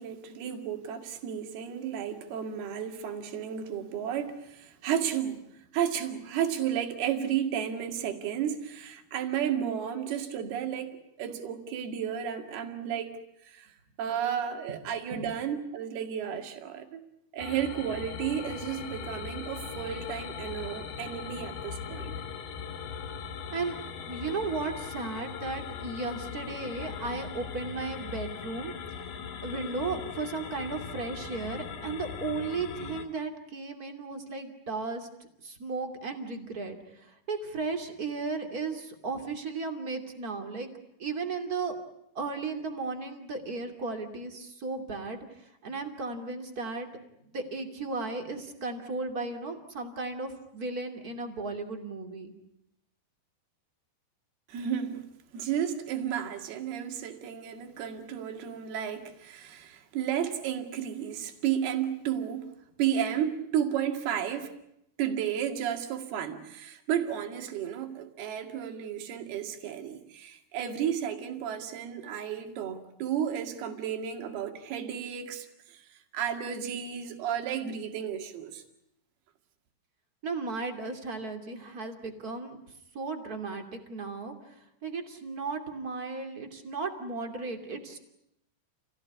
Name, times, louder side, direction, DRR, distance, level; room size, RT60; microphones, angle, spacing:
voice 1, 0.0-5.4 5.7-13.7 14.0-17.0 17.3-22.1 54.5-55.1 55.3-64.5 65.0-75.8 76.1-78.6, right 9 dB, 70° right, 4.0 m, -33 dB
sound 1, 17.4-33.1, left 6 dB, 70° left, 4.0 m, -39 dB
voice 2, 23.5-29.1 29.4-35.1 35.4-40.7 41.0-41.7 42.1-46.9 47.3-52.3 80.2-88.0, right 3 dB, 25° right, 2.6 m, -35 dB
29.0 x 17.5 x 9.7 m
omnidirectional pair, 4.7 m